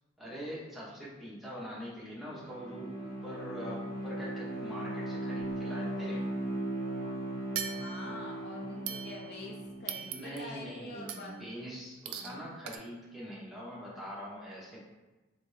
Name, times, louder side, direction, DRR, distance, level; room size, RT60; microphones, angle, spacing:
voice 1, 0.2-6.3 9.9-14.8, equal, ahead, -7 dB, 0.8 m, -43 dB
Bowed string instrument, 2.2-9.9, right 1 dB, 70° left, 1.2 m, -38 dB
sound 1, 7.6-8.3 8.9-9.5 9.9-10.6 11.1-11.4 12.1-12.4 12.7-12.8, right 9 dB, 85° right, 0.3 m, -40 dB
voice 2, 7.7-11.3 12.1-12.5, left 1 dB, 50° left, 0 dB, 0.5 m, -46 dB
3.3 x 2.6 x 3.2 m, 1.1 s
head